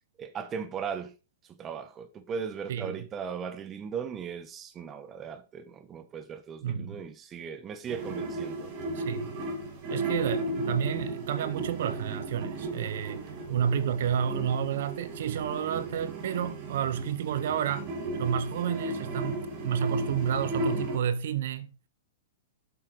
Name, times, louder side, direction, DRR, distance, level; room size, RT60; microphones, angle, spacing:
voice 1, 0.2-1.1 1.5-8.7, right 6 dB, 25° right, 1.2 m, -38 dB
voice 2, 2.7-3.1 6.6-7.0 8.9-9.4 9.9-17.9 18.2-21.7, right 8 dB, 65° right, 0.9 m, -30 dB
sound 1, 7.9-21.0, right 2 dB, 40° right, 3.4 m, -35 dB
8.2 x 7.5 x 3.8 m
hypercardioid pair, 135°, 0 cm